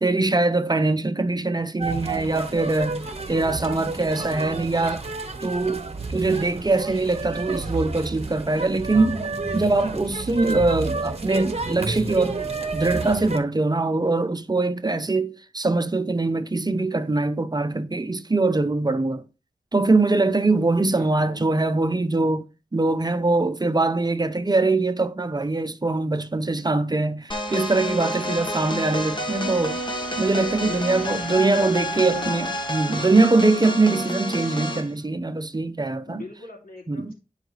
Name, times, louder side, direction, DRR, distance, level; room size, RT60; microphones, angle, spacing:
voice 1, 0.0-5.1 5.4-9.2 9.5-12.4 12.7-19.2 19.7-22.5 22.7-29.8 30.2-36.2 36.9-37.1, right 3 dB, 30° right, 0.6 m, -22 dB
sound 1, 1.8-13.4, right 3 dB, 45° right, 1.0 m, -31 dB
voice 2, 20.8-21.4 30.6-32.3 36.0-37.1, left 3 dB, 85° left, 2.5 m, -41 dB
sound 2, 27.3-34.9, equal, 35° left, 1.4 m, -29 dB
sound 3, 27.4-33.1, equal, ahead, 1.4 m, -43 dB
10.5 x 4.9 x 3.2 m
wide cardioid pair, 85°, 15 cm